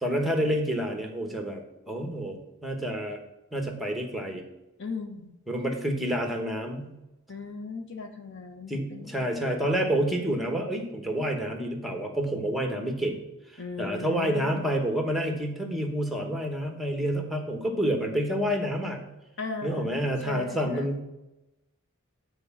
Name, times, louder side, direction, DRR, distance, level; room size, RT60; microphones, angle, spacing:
voice 1, 0.0-1.6 1.9-3.2 3.5-4.4 5.5-7.0 8.7-13.2 13.5-19.1 19.6-21.0, equal, ahead, 3 dB, 1.1 m, -28 dB
voice 2, 4.8-5.4 7.3-9.3 13.6-14.8 19.4-20.9, left 4 dB, 60° left, 6 dB, 0.9 m, -38 dB
9.5 x 4.5 x 7.1 m, 0.95 s
head